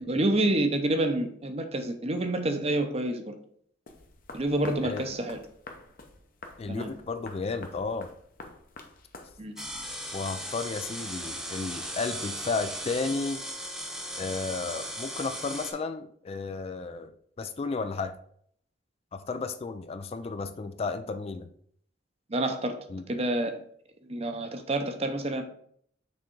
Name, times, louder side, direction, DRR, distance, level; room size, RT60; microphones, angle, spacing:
voice 1, 0.0-3.3 4.3-5.4 6.7-6.9 9.4-9.5 22.3-22.8 23.1-23.6 24.1-25.4, right 1 dB, 35° right, 6 dB, 0.7 m, -28 dB
sound 1, 3.9-10.1, left 3 dB, 50° left, 0.8 m, -47 dB
voice 2, 6.6-8.1 10.1-13.4 14.2-18.1 19.1-21.5 22.9-23.0, left 4 dB, 35° left, 10 dB, 0.3 m, -33 dB
sound 2, 9.6-15.7, equal, 5° right, 0.9 m, -37 dB
6.2 x 3.6 x 4.5 m, 0.64 s
head